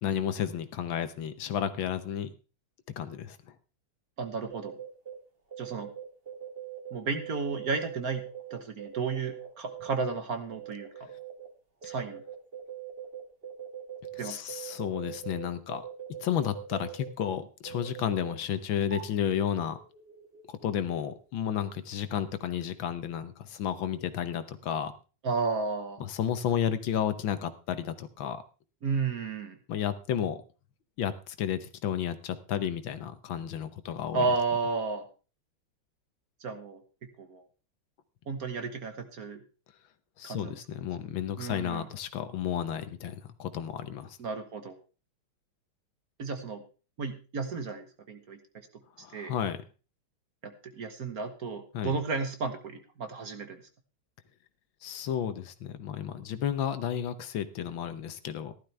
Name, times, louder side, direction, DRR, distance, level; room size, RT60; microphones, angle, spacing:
voice 1, 0.0-2.3 3.0-3.4 11.8-11.9 14.2-15.8 16.2-19.8 20.5-24.9 26.0-28.4 29.7-30.4 31.0-34.3 40.2-44.2 49.0-49.6 51.7-52.0 54.8-58.5, left 9 dB, 70° left, 11 dB, 1.7 m, -32 dB
voice 2, 4.2-4.8 5.6-5.9 6.9-8.2 8.5-11.1 11.8-12.2 14.2-14.4 25.2-26.0 28.8-29.6 34.1-35.1 36.4-36.8 37.2-37.4 38.3-39.4 40.2-40.6 41.4-41.9 44.2-44.8 46.2-46.6 47.0-48.7 49.1-49.3 50.4-53.6, right 4 dB, 50° right, 7 dB, 1.5 m, -33 dB
sound 1, 4.5-5.2 5.5-10.2 10.5-11.5 11.8-17.1 17.7-18.3 18.7-21.0 21.4-21.8 22.0-22.1, right 11 dB, 30° right, 2.0 m, -42 dB
15.0 x 12.0 x 3.3 m, 0.34 s
omnidirectional pair, 2.3 m